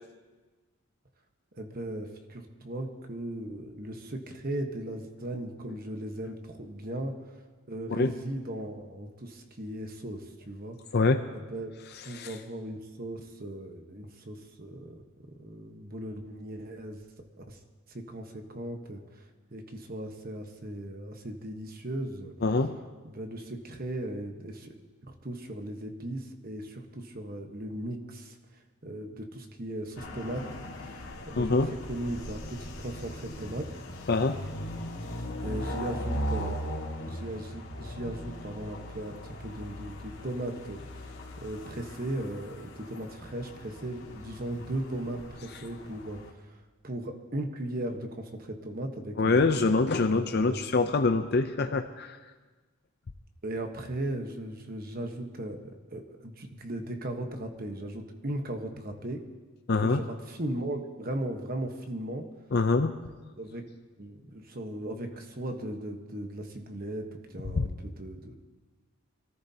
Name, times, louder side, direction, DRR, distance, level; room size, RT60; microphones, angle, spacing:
voice 1, 1.6-7.3 7.7-10.8 11.3-11.7 12.0-15.0 15.4-17.0 17.4-17.6 17.9-22.3 23.0-24.8 25.1-28.4 28.8-30.5 30.8-33.7 35.4-36.6 37.0-41.1 41.4-50.6 53.4-55.6 55.9-59.2 59.8-62.3 63.4-63.6 64.0-68.4, right 1 dB, 40° right, 5 dB, 1.2 m, -37 dB
voice 2, 22.4-22.7 31.4-31.7 34.1-34.4 49.2-52.2 59.7-60.0 62.5-62.9 67.5-67.7, left 3 dB, 45° left, 7 dB, 0.5 m, -25 dB
sound 1, 30.0-46.3, equal, 65° left, 2.0 m, -39 dB
25.5 x 14.0 x 2.8 m, 1.3 s
head